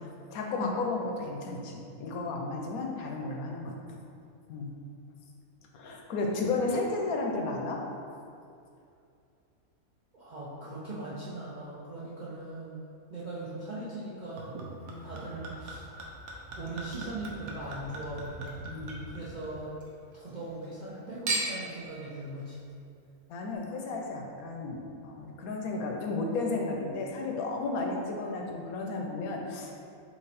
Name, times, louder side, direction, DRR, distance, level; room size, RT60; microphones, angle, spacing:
voice 1, 0.3-4.0 4.5-4.8 5.7-7.8 14.8-15.1 18.7-19.2 23.3-29.7, left 3 dB, 80° left, 1 dB, 1.1 m, -33 dB
voice 2, 10.1-12.8 13.1-14.6 15.0-15.9 16.5-18.6 19.1-19.8 20.1-22.6, right 2 dB, 55° right, -9 dB, 0.5 m, -40 dB
Chink clink / Liquid, 14.4-19.9 20.2-20.9 21.3-21.8 22.5-22.6, right 2 dB, 75° right, 1.1 m, -38 dB
3.9 x 3.0 x 4.1 m, 2.5 s
omnidirectional pair, 1.5 m